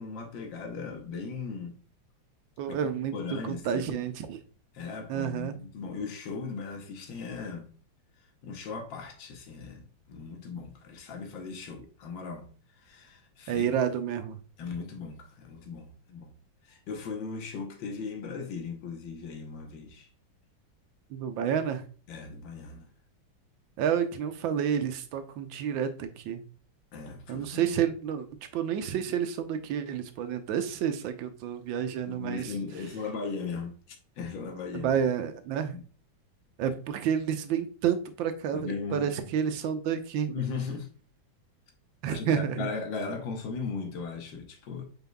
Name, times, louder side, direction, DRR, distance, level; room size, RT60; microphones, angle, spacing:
voice 1, 0.0-1.8 2.7-2.8 3.1-4.0 4.7-7.7 8.4-13.7 14.6-16.3 16.6-20.1 22.1-22.9 26.9-27.7 32.1-35.0 35.7-35.8 36.6-36.7 38.5-39.3 40.3-40.9 42.1-44.8, left 4 dB, 75° left, 1.6 m, -38 dB
voice 2, 2.6-3.1 3.5-4.4 5.1-5.6 13.5-14.4 21.1-21.8 23.8-26.4 27.3-28.3 28.5-32.5 34.7-35.7 36.6-40.3 42.0-42.7, right 8 dB, 80° right, 1.4 m, -29 dB
5.3 x 4.4 x 2.2 m
omnidirectional pair, 2.1 m